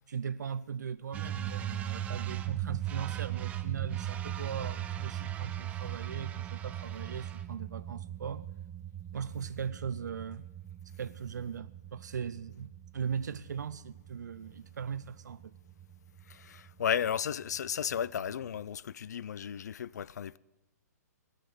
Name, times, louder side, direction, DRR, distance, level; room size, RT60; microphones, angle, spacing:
voice 1, 0.1-8.5 9.1-10.5 11.0-15.5, right 7 dB, 85° right, 0.5 m, -39 dB
sound 1, 1.1-18.6, right 12 dB, 15° right, 0.6 m, -39 dB
voice 2, 16.3-20.4, left 8 dB, 70° left, 0.4 m, -34 dB
18.0 x 6.6 x 9.3 m
hypercardioid pair, 145°, 9 cm